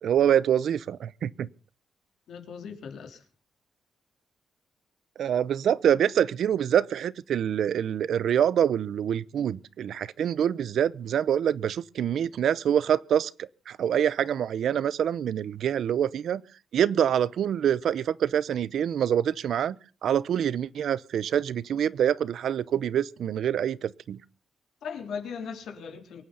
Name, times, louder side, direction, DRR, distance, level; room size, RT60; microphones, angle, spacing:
voice 1, 0.0-1.5 5.2-16.4 16.7-19.8 20.0-24.2, right 9 dB, 75° right, 0.7 m, -25 dB
voice 2, 2.3-3.2 24.8-26.2, left 6 dB, 85° left, 3.5 m, -38 dB
23.5 x 9.2 x 5.5 m
wide cardioid pair, 135°, 0 cm